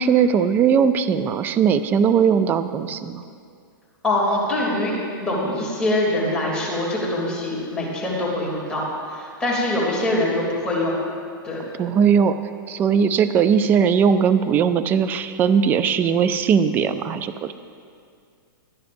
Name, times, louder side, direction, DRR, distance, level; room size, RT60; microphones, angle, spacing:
voice 1, 0.0-3.2 11.8-12.4 12.7-17.5, right 7 dB, 15° right, 11 dB, 0.3 m, -19 dB
voice 2, 4.0-4.9 5.2-10.9 11.4-11.6, left 1 dB, 5° left, -6 dB, 2.8 m, -23 dB
20.0 x 11.5 x 2.6 m, 2.3 s
hypercardioid pair, 155°, 12 cm